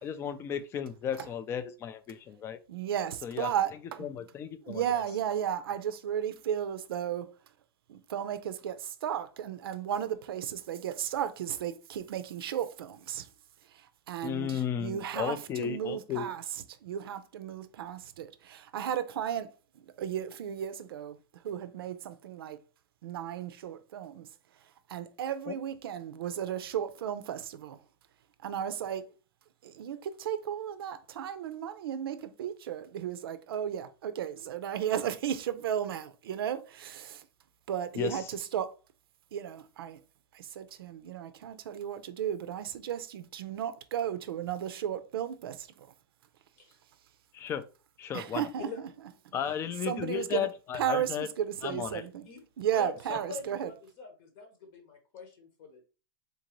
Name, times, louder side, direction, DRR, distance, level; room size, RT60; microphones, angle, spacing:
voice 1, 0.0-2.6 3.2-3.5 4.0-5.0 14.2-16.3 25.5-25.6 38.0-38.3 47.3-47.7 48.0-48.5 49.3-51.3 51.6-52.0, left 8 dB, 20° left, 0.3 m, -34 dB
voice 2, 2.7-4.2 4.6-7.3 7.9-13.3 13.7-16.4 16.8-19.5 20.0-21.2 21.4-22.6 23.0-24.3 24.9-27.8 28.4-29.1 29.6-37.3 37.7-38.7 39.3-40.0 40.3-45.9 48.1-48.7 49.9-50.5 50.7-52.3 52.6-53.7, right 9 dB, 80° right, 0.5 m, -34 dB
voice 3, 52.0-52.4 52.7-55.9, left 4 dB, 55° left, 1.0 m, -44 dB
3.8 x 2.6 x 2.9 m
hypercardioid pair, 140°, 12 cm